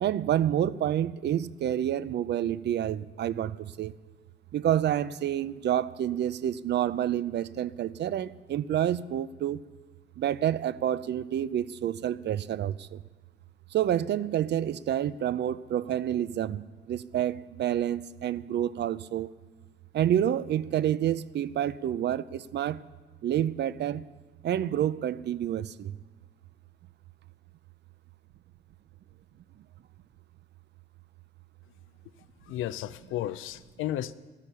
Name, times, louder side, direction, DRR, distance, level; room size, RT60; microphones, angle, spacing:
voice 1, 0.0-3.9 4.5-9.6 10.2-13.0 13.7-19.3 19.9-22.8 23.2-24.1 24.4-26.0, right 11 dB, 60° right, 17 dB, 0.6 m, -28 dB
voice 2, 32.5-34.1, left 13 dB, 85° left, 15 dB, 0.6 m, -33 dB
14.5 x 13.5 x 5.6 m, 1.3 s
cardioid pair, 90°, 20 cm